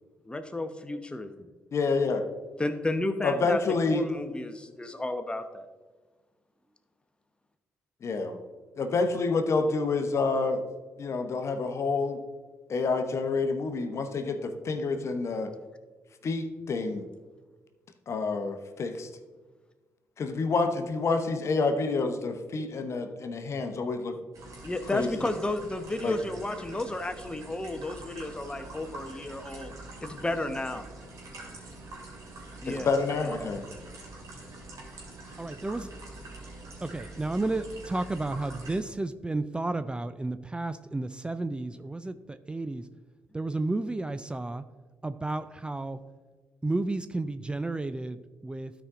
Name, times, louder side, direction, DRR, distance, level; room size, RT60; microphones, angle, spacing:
voice 1, 0.2-1.5 2.6-3.6 3.9-5.6 24.6-29.7 30.0-30.8 32.6-32.9 33.2-33.5, left 2 dB, 15° left, 8 dB, 0.9 m, -32 dB
voice 2, 1.7-2.3 3.2-4.0 8.0-8.4 8.8-10.6 11.0-12.2 12.7-15.5 16.2-17.1 18.1-19.1 20.2-24.2 24.9-25.1 26.0-26.1 32.7-33.6, left 4 dB, 55° left, 7 dB, 0.9 m, -28 dB
sound 1, 24.3-38.8, right 2 dB, 65° right, 2.6 m, -45 dB
voice 3, 35.4-35.9 36.8-42.9 43.3-44.6 45.0-46.0 46.6-48.7, right 2 dB, 15° right, 12 dB, 0.4 m, -32 dB
12.0 x 5.0 x 3.7 m, 1.3 s
supercardioid pair, 55°, 6 cm